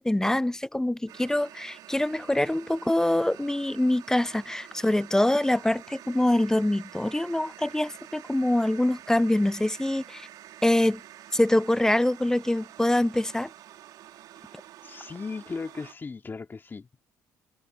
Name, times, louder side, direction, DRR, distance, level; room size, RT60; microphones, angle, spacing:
voice 1, 0.0-10.3 10.6-11.0 11.3-13.5, left 1 dB, 10° left, 0.5 m, -24 dB
sound 1, 1.1-15.9, right 13 dB, 70° right, 3.0 m, -48 dB
voice 2, 14.8-17.0, left 4 dB, 30° left, 2.4 m, -37 dB
hypercardioid pair, 55°, 7 cm